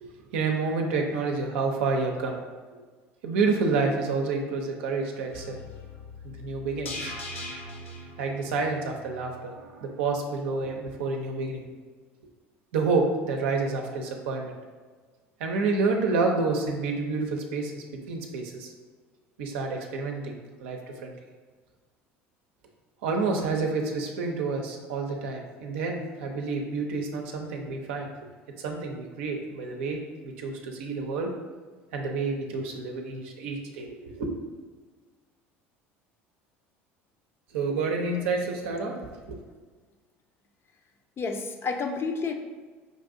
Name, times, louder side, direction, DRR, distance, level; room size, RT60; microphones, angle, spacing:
voice 1, 0.0-2.4 3.2-5.6 6.2-7.1 8.2-11.6 12.7-14.5 15.4-18.7 19.4-21.2 23.0-28.1 28.6-31.3 31.9-34.3 37.5-39.0 39.3-39.4, right 4 dB, 75° right, 2 dB, 0.6 m, -29 dB
sound 1, 5.3-9.5 9.9-10.0, left 1 dB, 90° left, 0.5 m, -41 dB
voice 2, 41.2-42.3, left 4 dB, 35° left, 5 dB, 0.5 m, -30 dB
5.2 x 2.6 x 2.5 m, 1.4 s
hypercardioid pair, 70°, 7 cm